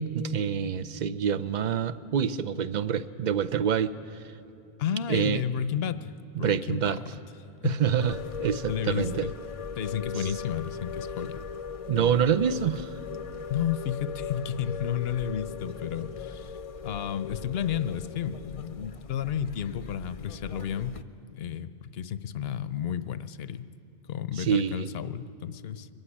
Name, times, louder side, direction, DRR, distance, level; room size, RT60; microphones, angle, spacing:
voice 1, 0.0-4.2 5.1-5.4 6.4-7.0 7.6-9.3 10.2-10.3 11.9-12.9 24.4-24.9, right 8 dB, 50° right, 13 dB, 0.7 m, -27 dB
voice 2, 4.8-6.1 6.4-6.8 7.6-7.8 8.7-9.3 9.8-11.4 12.0-12.2 13.5-16.6 16.8-21.0 21.3-23.7 24.1-25.9, left 9 dB, 70° left, 14 dB, 0.9 m, -32 dB
Henry Cowell Redwood steam train in the distance, 8.0-21.0, left 6 dB, 40° left, 0.6 m, -39 dB
23.0 x 14.5 x 9.9 m, 2.6 s
omnidirectional pair, 1.1 m